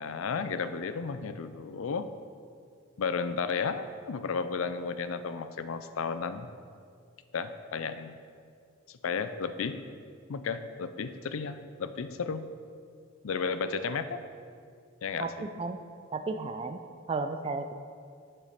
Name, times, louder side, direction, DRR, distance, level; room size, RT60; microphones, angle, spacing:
voice 1, 0.0-2.1 3.0-6.5 7.3-8.2 8.9-9.8 10.3-12.5 13.2-14.2 15.0-15.3, left 5 dB, 80° left, 11 dB, 0.5 m, -33 dB
voice 2, 15.2-15.8 16.1-17.8, right 3 dB, 25° right, 7 dB, 0.3 m, -34 dB
7.2 x 6.7 x 5.1 m, 2.3 s
head